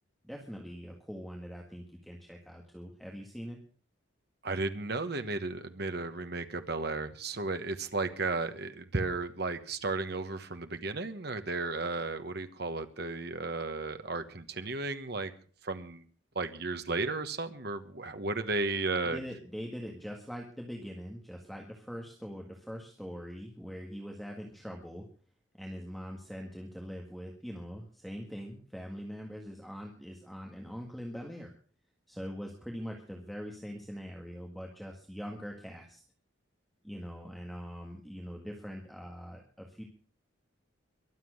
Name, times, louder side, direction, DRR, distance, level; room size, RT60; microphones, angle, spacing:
voice 1, 0.2-3.6 19.1-25.1 25.6-31.5 32.1-36.0 36.8-39.8, equal, ahead, 1 dB, 1.8 m, -42 dB
voice 2, 4.4-15.3 15.6-16.0 16.3-19.2, right 3 dB, 55° right, 8 dB, 1.3 m, -34 dB
23.0 x 7.7 x 6.4 m, 0.43 s
head